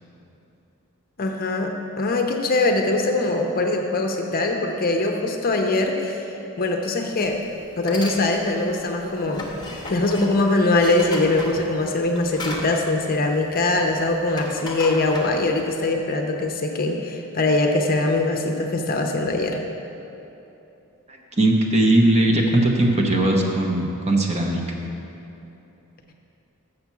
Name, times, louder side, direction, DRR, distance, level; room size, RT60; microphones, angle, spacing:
voice 1, 1.2-6.3 6.6-7.4 7.8-9.6 9.9-19.6, left 2 dB, 40° left, 3 dB, 0.6 m, -22 dB
sound 1, 7.2-7.4 7.7-8.2 8.5-13.8 14.1-15.7, left 2 dB, 20° left, 1.0 m, -35 dB
voice 2, 21.1-24.8, right 1 dB, 30° right, 0 dB, 0.9 m, -19 dB
6.7 x 6.0 x 7.0 m, 2.9 s
head